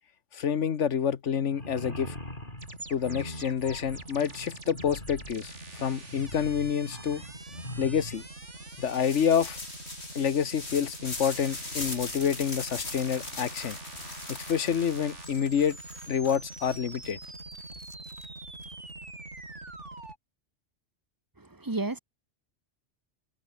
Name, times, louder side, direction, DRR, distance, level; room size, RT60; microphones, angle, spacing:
voice 1, 0.3-2.1 2.9-7.2 7.8-8.2 8.8-9.6 10.1-13.8 14.3-15.8 16.1-17.2, left 7 dB, 80° left, 1.5 m, -28 dB
sound 1, 1.5-8.3, left 1 dB, 45° left, 8.1 m, -42 dB
sound 2, 2.6-20.2, right 2 dB, 80° right, 4.8 m, -44 dB
sound 3, 8.8-18.6, left 3 dB, 65° left, 3.9 m, -41 dB
voice 2, 21.4-22.0, right 2 dB, 15° right, 1.4 m, -32 dB
omnidirectional pair, 1.2 m